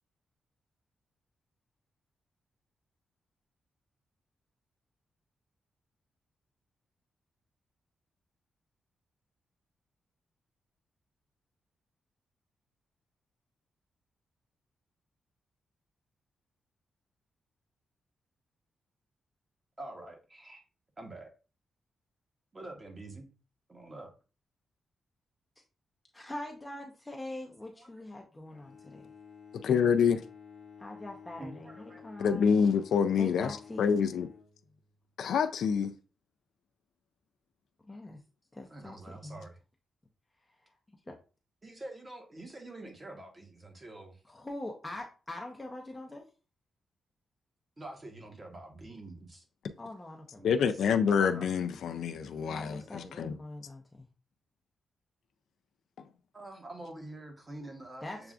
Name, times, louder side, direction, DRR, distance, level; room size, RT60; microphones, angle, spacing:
voice 1, 19.8-20.6 21.0-21.3 22.5-23.3 23.7-24.1 27.2-27.4 27.8-28.0 31.4-32.1 33.2-33.6 38.7-39.6 41.6-44.2 47.8-49.4 50.4-51.5 56.3-58.3, right 2 dB, 25° right, 1.0 m, -46 dB
voice 2, 26.1-29.1 30.8-32.5 33.2-34.0 37.9-38.2 38.5-39.5 41.1-41.2 44.3-46.2 49.8-50.4 52.5-54.1 58.0-58.3, left 1 dB, 15° left, 0.6 m, -43 dB
Bowed string instrument, 28.4-35.1, left 6 dB, 35° left, 0.9 m, -53 dB
voice 3, 29.5-30.2 32.2-34.3 35.2-35.9 50.4-53.4, left 6 dB, 80° left, 0.3 m, -27 dB
6.7 x 2.3 x 2.4 m
cardioid pair, 115°, 0 cm